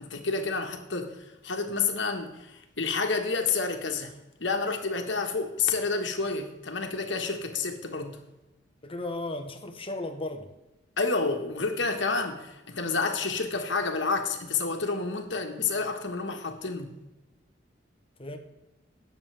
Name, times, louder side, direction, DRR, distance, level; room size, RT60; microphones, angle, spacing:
voice 1, 0.0-4.1 4.4-8.2 11.0-16.9, left 4 dB, 70° left, 1.6 m, -29 dB
voice 2, 8.8-10.5 18.2-18.4, left 2 dB, 30° left, 1.1 m, -35 dB
18.5 x 7.3 x 3.5 m
head